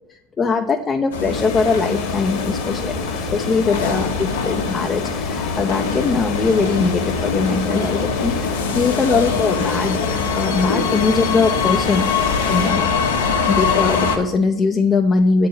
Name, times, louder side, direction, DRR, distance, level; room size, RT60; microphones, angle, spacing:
voice 1, 0.1-3.0 3.3-10.1 10.3-12.1 12.5-13.0 13.5-15.5, left 4 dB, 25° left, 4 dB, 0.7 m, -21 dB
sound 1, 1.1-14.2, left 5 dB, 90° left, 1.6 m, -22 dB
sound 2, 1.3-12.7, left 6 dB, 45° left, 1.4 m, -33 dB
8.0 x 4.9 x 7.5 m, 0.83 s
hypercardioid pair, 105°, 0 cm